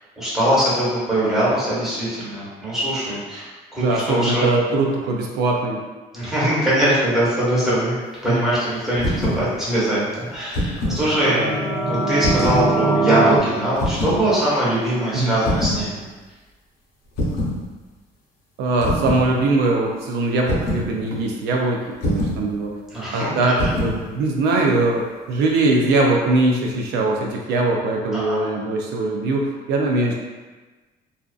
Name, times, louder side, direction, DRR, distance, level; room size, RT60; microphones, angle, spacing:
voice 1, 0.2-4.5 6.1-11.3 11.9-16.0 22.9-23.3 28.1-28.4, right 1 dB, ahead, -10 dB, 1.1 m, -22 dB
voice 2, 3.8-5.8 8.2-8.5 11.3-11.7 15.1-15.4 18.6-22.8 23.1-30.1, right 2 dB, 85° right, 0 dB, 0.4 m, -21 dB
sound 1, 9.0-9.4 10.3-11.0 12.2-12.7 13.8-14.2 15.4-15.8 17.2-17.6 18.8-19.3 20.5-20.9 22.0-22.4 23.6-24.0, left 1 dB, 80° left, 0.7 m, -23 dB
sound 2, 10.8-13.4, right 3 dB, 20° right, 0.6 m, -22 dB
2.5 x 2.3 x 2.3 m, 1.3 s
cardioid pair, 110°, 17 cm